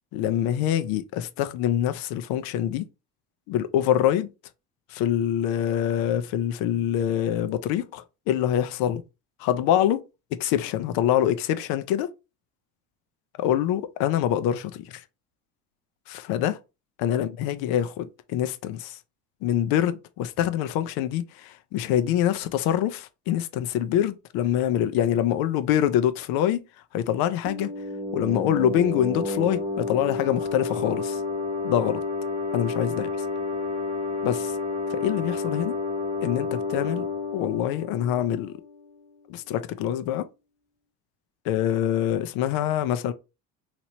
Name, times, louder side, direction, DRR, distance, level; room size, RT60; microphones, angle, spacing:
voice 1, 0.1-2.9 3.5-4.3 4.9-9.0 9.4-10.0 10.3-12.1 13.4-15.0 16.1-16.6 17.0-19.0 19.4-26.7 26.9-27.7 28.1-31.2 31.6-32.0 32.5-33.1 34.2-34.6 34.9-35.8 36.2-37.1 37.3-38.6 39.3-40.3 41.4-43.1, left 11 dB, 70° left, 0.5 m, -25 dB
sound 1, 27.5-38.9, left 3 dB, 15° right, 0.9 m, -30 dB
3.0 x 2.9 x 2.8 m
supercardioid pair, 95°, 38 cm